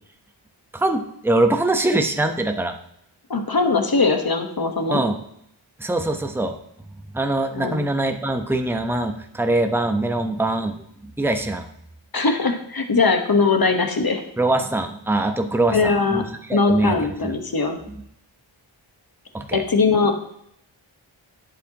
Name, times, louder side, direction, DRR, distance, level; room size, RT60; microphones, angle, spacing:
voice 1, 0.7-2.8 4.9-5.2 5.8-6.5 7.1-11.6 14.4-17.4 17.9-18.0 19.3-19.6, right 2 dB, 5° right, 5 dB, 0.8 m, -23 dB
voice 2, 3.3-5.0 7.5-7.8 12.1-14.2 15.7-16.2 16.5-17.8 19.5-20.2, left 4 dB, 45° left, 5 dB, 1.3 m, -20 dB
11.0 x 7.5 x 2.9 m, 0.73 s
wide cardioid pair, 60°, 49 cm